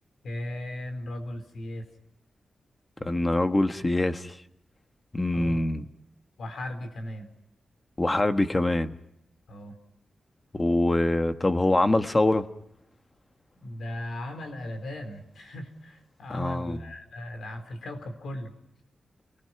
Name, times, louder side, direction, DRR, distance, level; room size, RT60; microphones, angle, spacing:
voice 1, 0.2-1.8 5.3-5.6 6.4-7.3 9.5-9.8 13.5-18.5, left 1 dB, 80° left, 4.2 m, -37 dB
voice 2, 3.0-4.4 5.1-5.8 8.0-8.9 10.5-12.5 16.3-16.8, left 2 dB, 20° left, 1.3 m, -24 dB
29.5 x 20.0 x 5.9 m
wide cardioid pair, 125°, 0 cm